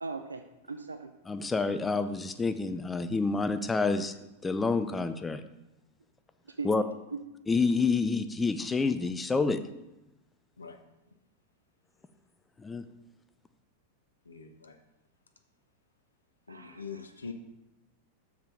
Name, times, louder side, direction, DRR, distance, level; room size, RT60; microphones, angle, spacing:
voice 1, 0.0-1.1 6.6-7.2 16.5-16.8, right 4 dB, 80° right, 7 dB, 0.4 m, -39 dB
voice 2, 1.3-4.1 4.4-5.4 6.6-6.8 7.5-9.6 12.6-12.9, left 4 dB, 15° left, 11 dB, 0.4 m, -28 dB
voice 3, 14.3-14.8 16.5-17.3, left 5 dB, 80° left, 6 dB, 0.8 m, -43 dB
6.8 x 4.8 x 5.8 m, 0.95 s
figure-of-eight pair, 90°, 0 cm